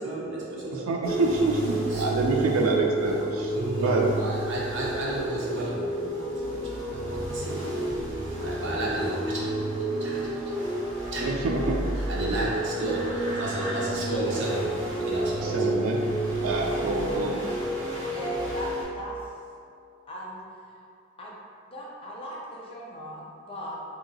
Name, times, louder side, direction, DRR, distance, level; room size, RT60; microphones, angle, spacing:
voice 1, 0.0-0.9 1.9-2.1 3.5-6.6 6.9-9.4 10.0-10.2 11.1-11.4 12.0-15.8 16.1-16.3, right 2 dB, 60° right, -5 dB, 0.8 m, -33 dB
voice 2, 0.9-1.6 2.0-3.5 3.8-4.0 11.2-11.8 15.5-16.0 16.4-17.4, right 3 dB, 85° right, 0 dB, 0.4 m, -26 dB
sound 1, 1.0-18.8, right 1 dB, 15° right, 1.4 m, -30 dB
voice 3, 18.0-19.2 20.1-20.4 21.2-21.3 21.7-23.8, right 1 dB, 25° left, -4 dB, 0.5 m, -38 dB
3.4 x 2.8 x 2.7 m, 2.4 s
head